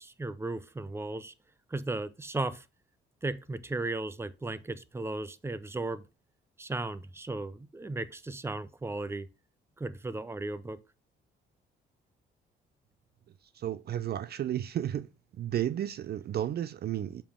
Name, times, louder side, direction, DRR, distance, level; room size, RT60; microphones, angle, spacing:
voice 1, 0.0-1.3 1.7-2.6 3.2-6.0 6.6-9.3 9.8-10.8, right 2 dB, 10° right, 0.6 m, -35 dB
voice 2, 13.6-15.1 15.4-17.2, right 11 dB, 55° right, 0.4 m, -32 dB
6.8 x 5.3 x 3.6 m
cardioid pair, 90°, 20 cm